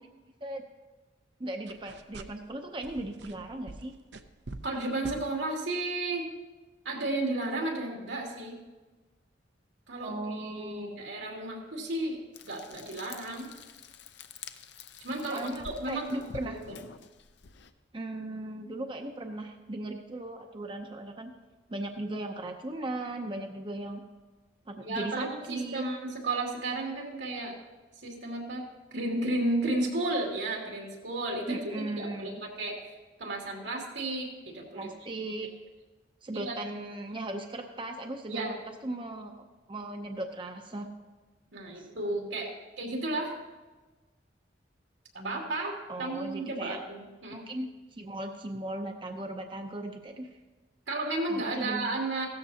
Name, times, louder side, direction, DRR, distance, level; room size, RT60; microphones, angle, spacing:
voice 1, 1.4-3.9 10.0-11.0 15.3-16.6 17.9-21.3 21.7-24.0 24.7-25.8 31.5-32.3 34.7-35.5 36.2-38.5 38.8-39.3 39.7-40.9 41.8-41.9 45.9-46.8 47.3-50.3 51.3-51.9, right 2 dB, 25° right, 4 dB, 0.6 m, -37 dB
sound 1, 1.7-2.5 2.8-4.8 5.0-5.2, right 2 dB, 65° right, 0.6 m, -45 dB
voice 2, 4.6-6.3 6.8-8.6 9.9-12.2 12.4-13.5 15.0-16.2 16.4-16.8 24.8-27.6 28.0-32.8 33.2-34.9 36.3-36.6 38.3-38.6 41.5-42.5 42.8-43.3 45.1-47.4 50.9-52.3, right 2 dB, 90° right, -1 dB, 2.6 m, -33 dB
Frying (food), 12.3-17.7, left 5 dB, 65° left, 0.6 m, -48 dB
16.0 x 13.0 x 2.8 m, 1.2 s
head